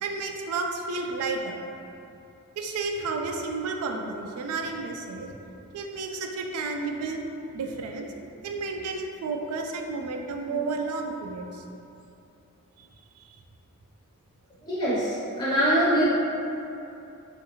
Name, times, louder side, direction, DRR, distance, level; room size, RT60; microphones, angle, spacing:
voice 1, 0.0-1.6 2.6-5.4 5.7-7.2 7.5-8.1 8.4-11.6 12.8-12.9, right 3 dB, 85° right, 3 dB, 0.3 m, -31 dB
voice 2, 14.6-16.1, right 1 dB, 15° left, -10 dB, 0.5 m, -24 dB
3.6 x 2.5 x 2.8 m, 2.8 s
head